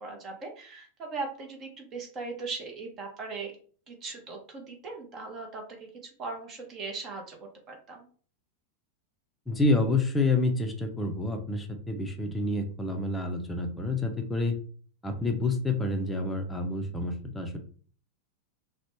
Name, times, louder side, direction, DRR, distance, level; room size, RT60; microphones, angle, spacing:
voice 1, 0.0-3.5 3.9-8.1, right 3 dB, 30° right, 2 dB, 0.7 m, -39 dB
voice 2, 9.5-14.5 15.0-17.6, left 2 dB, 10° left, 2 dB, 0.5 m, -28 dB
3.0 x 2.0 x 2.9 m, 0.43 s
figure-of-eight pair, 90°, 0 cm